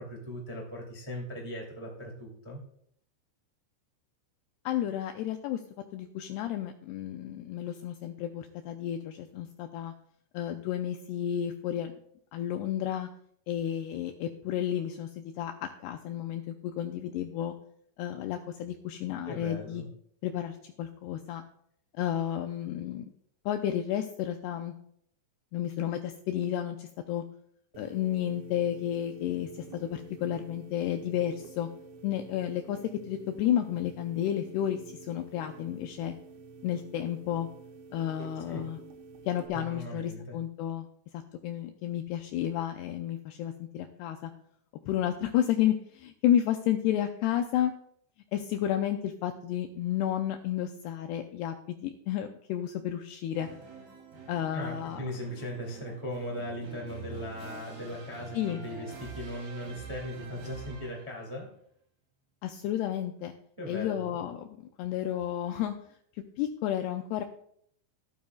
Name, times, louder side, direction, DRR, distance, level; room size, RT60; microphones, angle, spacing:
voice 1, 0.0-2.6 19.2-19.9 38.5-38.6 39.5-40.4 54.5-61.5 63.6-64.2, equal, 30° right, -2 dB, 0.5 m, -38 dB
voice 2, 4.7-5.6 5.9-9.9 10.3-12.0 12.3-13.1 13.5-17.5 18.0-19.8 20.2-21.4 22.0-23.1 23.5-24.7 25.5-27.2 27.8-31.7 32.0-32.8 33.1-36.1 36.6-37.5 37.9-38.8 39.3-40.9 41.4-44.3 44.9-47.7 48.3-53.5 54.3-55.0 58.3-58.6 62.4-63.3 63.7-65.7 66.1-67.2, left 11 dB, 85° left, 6 dB, 2.3 m, -31 dB
sound 1, 27.7-39.5, right 4 dB, 85° right, 3.3 m, -49 dB
sound 2, 53.4-61.2, right 3 dB, 60° right, 4.8 m, -46 dB
12.5 x 12.5 x 2.3 m, 0.69 s
omnidirectional pair, 5.3 m